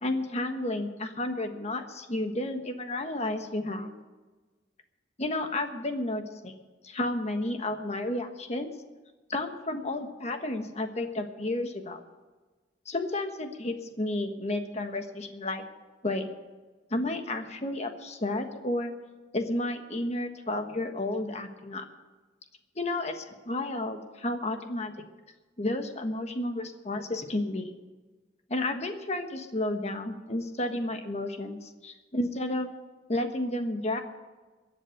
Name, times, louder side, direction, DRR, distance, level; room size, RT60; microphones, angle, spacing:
voice 1, 0.0-3.9 5.2-6.5 6.8-8.7 9.3-12.0 12.9-15.6 16.0-16.3 16.9-18.9 19.3-21.8 22.8-24.9 25.6-27.7 28.5-32.7 33.1-34.0, left 1 dB, 35° left, 6 dB, 1.4 m, -32 dB
22.0 x 7.6 x 6.6 m, 1.3 s
head